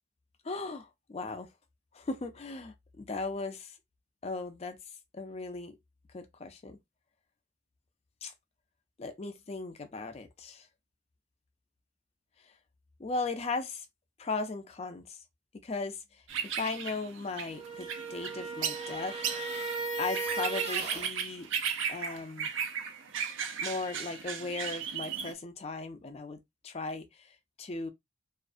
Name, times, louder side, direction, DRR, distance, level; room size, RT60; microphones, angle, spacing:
voice 1, 0.4-1.5 1.9-3.8 4.2-4.8 5.1-5.8 6.1-6.8 8.2-8.3 9.0-10.7 13.0-13.9 14.2-15.2 15.6-19.2 20.0-21.5 21.9-22.5 23.6-27.9, left 3 dB, 30° left, 0.4 m, -37 dB
sound 1, 16.3-25.3, right 7 dB, 80° right, 0.4 m, -36 dB
sound 2, 17.5-21.1, right 3 dB, 30° right, 0.6 m, -36 dB
2.4 x 2.1 x 2.5 m
head